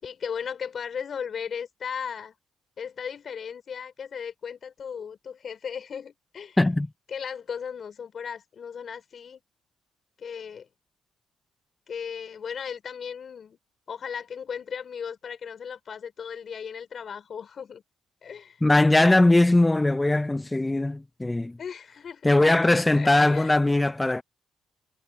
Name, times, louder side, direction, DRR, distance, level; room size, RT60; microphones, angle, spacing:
voice 1, 0.0-2.3 2.8-6.6 7.1-9.4 10.2-10.7 11.9-13.6 13.9-17.8 18.2-18.6 21.6-22.4 23.0-23.5, left 7 dB, 50° left, 5.2 m, -36 dB
voice 2, 18.6-21.6 22.2-24.2, left 2 dB, 15° left, 0.6 m, -20 dB
cardioid pair, 90°, 0 cm